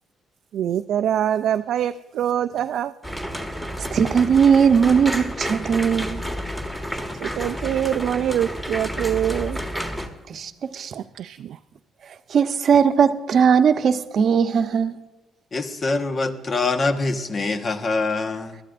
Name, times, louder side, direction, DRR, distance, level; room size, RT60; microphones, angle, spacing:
voice 1, 0.5-2.9 7.2-9.6 10.7-11.6, right 10 dB, 75° right, 0.3 m, -24 dB
sound 1, 3.0-10.1, equal, 10° left, 1.7 m, -30 dB
voice 2, 3.8-6.2 10.3-10.9 12.3-14.9, right 7 dB, 60° right, 0.7 m, -19 dB
voice 3, 15.5-18.6, left 3 dB, 40° left, 1.2 m, -24 dB
21.0 x 13.0 x 2.5 m
cardioid pair, 90°, 0 cm